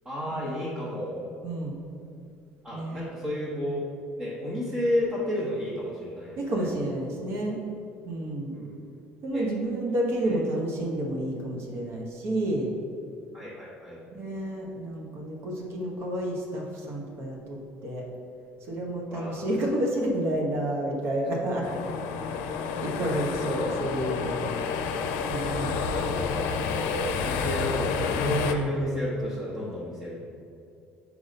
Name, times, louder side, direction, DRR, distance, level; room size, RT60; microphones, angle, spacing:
voice 1, 0.0-1.2 2.6-3.8 4.2-6.7 8.5-8.7 9.3-9.5 10.2-10.4 13.3-14.0 19.1-19.5 21.7-22.0 23.0-23.4 25.7-30.2, left 1 dB, 20° right, -7 dB, 1.3 m, -32 dB
voice 2, 1.4-1.8 2.7-3.1 6.4-7.6 8.0-8.5 9.2-12.7 14.1-18.0 18.7-21.7 22.2-22.5 22.8-24.5 25.3-25.8, right 1 dB, 60° right, 0 dB, 1.1 m, -30 dB
sound 1, 21.6-28.5, left 5 dB, 85° left, 0.5 m, -30 dB
4.7 x 4.1 x 5.3 m, 2.5 s
supercardioid pair, 100°, 5 cm